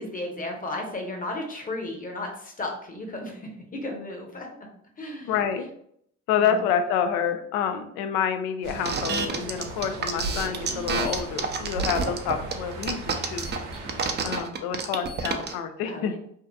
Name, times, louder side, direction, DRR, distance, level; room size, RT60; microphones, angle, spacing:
voice 1, 0.0-4.5 5.0-5.3 6.4-6.6 15.8-16.2, left 2 dB, 25° left, 1 dB, 0.8 m, -34 dB
voice 2, 5.3-5.7 6.3-13.5 14.2-16.1, left 7 dB, 75° left, 8 dB, 0.5 m, -28 dB
sound 1, 8.6-14.4, right 2 dB, 85° right, 0.6 m, -37 dB
sound 2, 8.9-15.5, right 5 dB, 30° right, 0.4 m, -28 dB
2.7 x 2.4 x 2.3 m, 0.67 s
hypercardioid pair, 60°, 36 cm